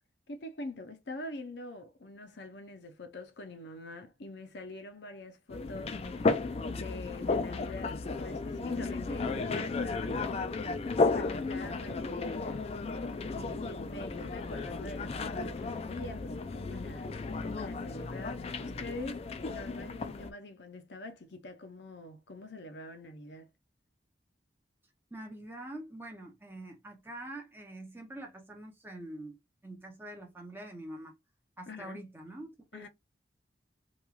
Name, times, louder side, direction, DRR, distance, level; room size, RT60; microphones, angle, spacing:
voice 1, 0.3-6.0 6.6-10.5 11.1-12.6 13.3-19.2 19.5-23.5 31.7-32.0 32.7-32.9, left 2 dB, 70° left, 0.6 m, -45 dB
sound 1, 5.5-20.3, left 3 dB, 35° left, 0.3 m, -34 dB
voice 2, 25.1-29.4 29.6-31.2 31.6-32.9, right 1 dB, 10° right, 0.6 m, -45 dB
3.0 x 2.3 x 2.3 m
head